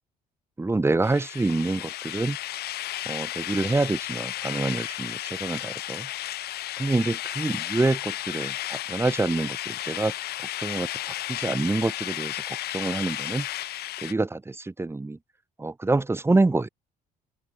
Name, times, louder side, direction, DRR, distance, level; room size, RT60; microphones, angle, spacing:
voice 1, 0.6-2.4 3.1-6.1 6.8-10.1 10.6-10.9 11.3-12.4 12.7-13.5 14.0-15.2 15.6-16.7, right 2 dB, 15° right, 2.2 m, -26 dB
sound 1, 1.0-14.1, left 14 dB, 70° left, 2.8 m, -33 dB
open air
cardioid pair, 110°, 17 cm